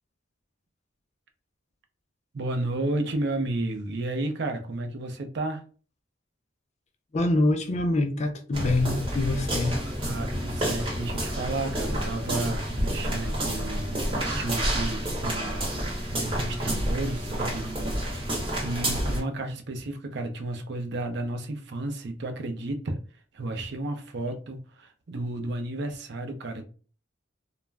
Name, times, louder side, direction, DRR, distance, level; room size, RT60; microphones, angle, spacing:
voice 1, 2.3-5.7 10.0-23.0 23.3-26.6, right 2 dB, 60° right, 0.5 m, -32 dB
voice 2, 7.1-9.8, left 2 dB, 35° left, 0.4 m, -25 dB
sound 1, 8.5-19.2, equal, 25° right, 1.0 m, -29 dB
2.4 x 2.1 x 3.2 m
head